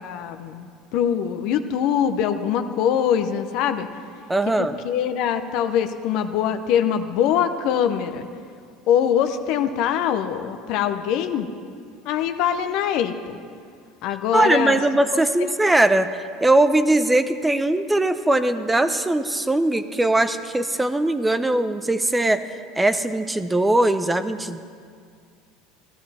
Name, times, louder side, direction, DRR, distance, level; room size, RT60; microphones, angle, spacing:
voice 1, 0.0-3.9 4.6-8.3 8.9-11.5 12.1-13.4 14.0-14.8, left 9 dB, 65° left, 8 dB, 0.7 m, -23 dB
voice 2, 4.3-4.7 14.3-22.4 22.7-24.6, right 2 dB, 10° right, 11 dB, 0.7 m, -20 dB
14.0 x 13.5 x 4.3 m, 2.2 s
hypercardioid pair, 85°, 0 cm